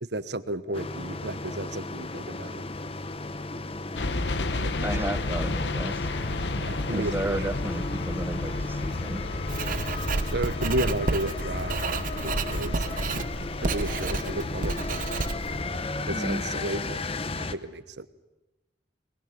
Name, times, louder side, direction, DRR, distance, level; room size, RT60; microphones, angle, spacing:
voice 1, 0.0-2.6 4.6-4.9 6.6-7.4 10.3-12.9 13.6-14.8 16.1-17.0 17.4-18.1, right 1 dB, 65° right, 13 dB, 1.2 m, -33 dB
sound 1, 0.7-17.5, left 2 dB, 30° left, 0.9 m, -35 dB
sound 2, 4.0-14.8, left 2 dB, 70° left, 1.0 m, -33 dB
voice 2, 4.8-6.1 6.8-9.2 16.1-16.4, right 1 dB, 10° right, 13 dB, 0.8 m, -33 dB
Writing, 9.5-15.6, right 3 dB, 45° right, 0.8 m, -31 dB
22.5 x 21.0 x 9.6 m, 1.0 s
head